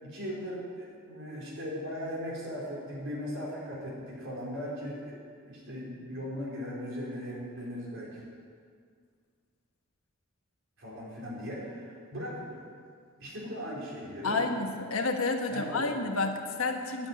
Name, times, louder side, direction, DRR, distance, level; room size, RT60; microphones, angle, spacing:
voice 1, 0.0-5.1 5.4-8.2 10.8-12.6 13.2-14.5 15.5-15.8, equal, 65° right, -5 dB, 4.4 m, -38 dB
voice 2, 14.2-17.1, left 3 dB, 80° left, 4 dB, 1.3 m, -30 dB
10.0 x 9.0 x 9.7 m, 2.1 s
head